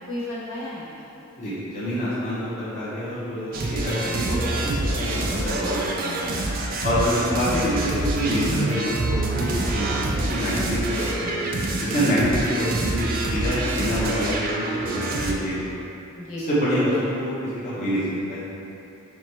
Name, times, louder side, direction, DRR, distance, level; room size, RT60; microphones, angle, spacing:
voice 1, 0.1-1.1 4.0-4.2 6.9-7.1 12.2-12.5 16.1-16.8, left 1 dB, 70° left, -7 dB, 0.9 m, -34 dB
voice 2, 1.4-6.4 6.8-11.3 11.8-15.6 16.5-18.5, equal, 35° left, -11 dB, 0.7 m, -26 dB
sound 1, 3.5-15.3, right 2 dB, 40° right, 0.3 m, -26 dB
4.7 x 2.1 x 4.1 m, 2.8 s
head